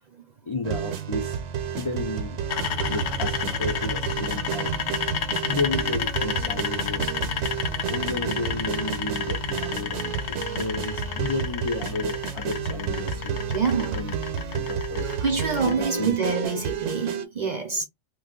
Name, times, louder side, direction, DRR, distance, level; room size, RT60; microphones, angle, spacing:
voice 1, 0.5-1.4 1.8-2.4 2.9-4.7 5.4-7.2 7.9-13.4 13.8-15.1 15.6-16.6, left 3 dB, 40° left, 0.4 m, -32 dB
sound 1, 0.6-17.3, right 8 dB, 70° right, 0.9 m, -31 dB
sound 2, 2.5-15.7, left 7 dB, 75° left, 0.9 m, -31 dB
voice 2, 13.5-14.0 15.2-17.8, right 5 dB, 45° right, 0.6 m, -26 dB
2.5 x 2.3 x 3.7 m
omnidirectional pair, 1.3 m